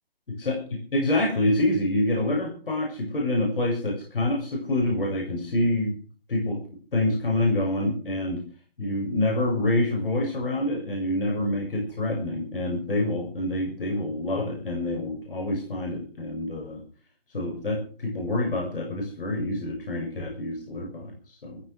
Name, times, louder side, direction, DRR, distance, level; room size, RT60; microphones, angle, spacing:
voice 1, 0.3-6.0 6.3-6.6 6.9-8.4 8.8-16.8 17.3-21.6, left 1 dB, 70° left, 0 dB, 7.0 m, -27 dB
15.5 x 14.0 x 6.1 m, 0.40 s
hypercardioid pair, 175°, 29 cm